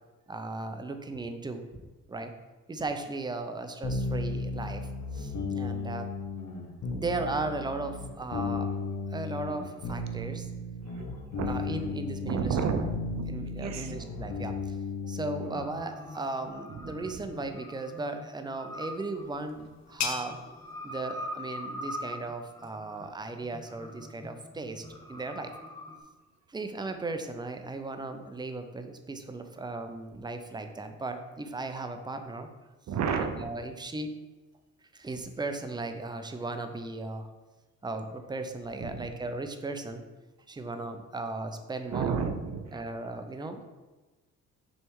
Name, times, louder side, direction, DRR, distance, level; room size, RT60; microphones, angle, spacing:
voice 1, 0.3-2.3 2.7-6.1 6.9-8.8 9.1-10.5 11.4-12.9 13.3-14.8 15.1-20.4 20.8-25.5 26.5-32.5 33.1-34.1 34.9-37.3 37.8-40.0 40.5-42.2 42.7-43.7, right 2 dB, 15° right, 7 dB, 0.6 m, -36 dB
sound 1, 3.8-15.7, left 3 dB, 80° left, 1.6 m, -35 dB
voice 2, 11.4-13.3 13.6-13.9 16.8-17.0 32.9-33.5 38.8-39.1 41.9-42.6, right 6 dB, 65° right, 7 dB, 0.8 m, -31 dB
sound 2, 15.5-26.0, left 1 dB, 10° left, 0.9 m, -43 dB
sound 3, 18.7-24.1, left 6 dB, 65° left, 0.8 m, -42 dB
6.3 x 3.3 x 4.7 m, 1.2 s
cardioid pair, 90°, 30 cm